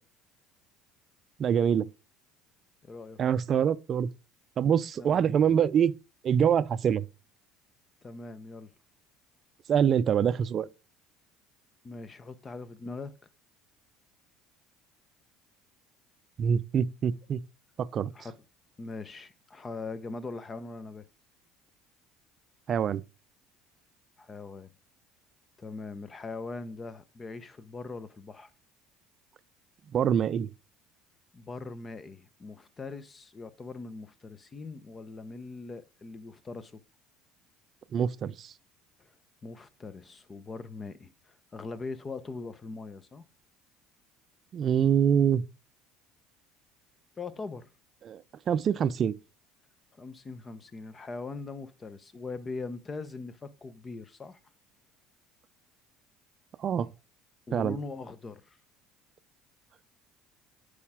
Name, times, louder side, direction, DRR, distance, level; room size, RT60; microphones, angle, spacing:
voice 1, 1.4-1.9 3.2-4.1 4.6-5.9 6.2-7.0 9.7-10.7 16.4-17.4 17.8-18.1 22.7-23.0 29.9-30.5 37.9-38.5 44.5-45.4 48.1-49.1 56.6-56.9 57.5-57.7, right 8 dB, 45° right, 0.5 m, -25 dB
voice 2, 2.8-3.2 5.0-5.2 8.0-8.7 11.8-13.2 18.1-18.3 18.8-21.1 24.2-24.7 25.6-28.5 31.3-36.8 39.0-39.1 39.4-43.2 47.2-47.7 50.0-54.4 57.5-58.6, left 3 dB, 30° left, 0.9 m, -41 dB
8.3 x 5.0 x 3.6 m
hypercardioid pair, 70°, 0 cm